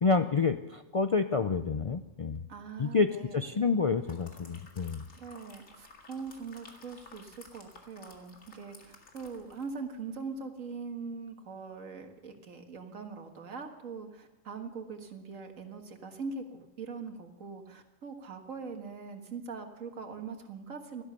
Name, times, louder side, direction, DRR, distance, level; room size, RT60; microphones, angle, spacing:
voice 1, 0.0-2.4 2.8-5.0, left 4 dB, 55° left, 8 dB, 0.3 m, -28 dB
voice 2, 2.5-3.7 5.2-21.0, right 5 dB, 90° right, 5 dB, 2.0 m, -42 dB
sound 1, 3.7-9.8 10.1-10.3, left 3 dB, 85° left, 2.4 m, -55 dB
16.5 x 12.5 x 6.8 m, 1.0 s
omnidirectional pair, 1.3 m